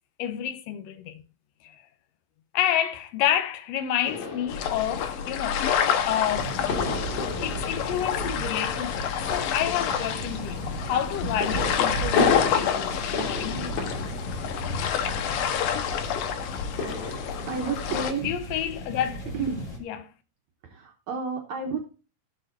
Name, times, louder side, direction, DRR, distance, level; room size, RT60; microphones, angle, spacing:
voice 1, 0.2-1.2 1.6-1.8 2.5-5.7 6.1-6.5 7.4-13.8 18.2-19.3 19.9-20.1, left 10 dB, 75° left, 1.6 m, -29 dB
sound 1, 4.0-17.8, left 4 dB, 55° left, 3.2 m, -33 dB
sound 2, 4.5-18.1, left 8 dB, 90° left, 2.7 m, -29 dB
sound 3, 6.2-19.8, right 1 dB, 35° left, 2.2 m, -36 dB
voice 2, 17.5-18.3 19.3-19.7 20.6-21.8, right 5 dB, 65° right, 2.1 m, -31 dB
16.5 x 6.6 x 2.5 m
omnidirectional pair, 3.9 m